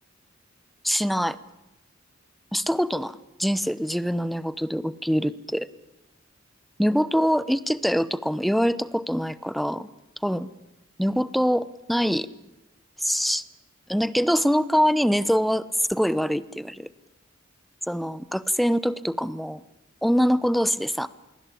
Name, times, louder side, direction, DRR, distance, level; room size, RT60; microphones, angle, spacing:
voice 1, 0.8-1.4 2.5-5.7 6.8-9.9 10.2-10.5 11.0-12.3 13.0-13.4 13.9-16.9 17.9-19.6 20.0-21.1, equal, ahead, 16 dB, 0.9 m, -24 dB
27.5 x 22.0 x 8.6 m, 0.95 s
head